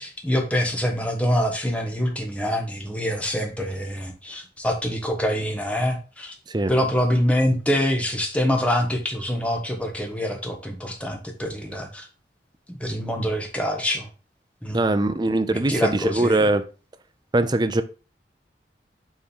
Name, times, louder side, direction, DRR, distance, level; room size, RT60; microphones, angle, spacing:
voice 1, 0.0-6.3 6.7-12.0 12.7-14.1 14.6-14.8 15.5-16.5, equal, 10° left, 1.4 m, -25 dB
voice 2, 14.7-16.6 17.3-17.8, right 2 dB, 25° right, 0.5 m, -21 dB
7.2 x 3.8 x 5.5 m
head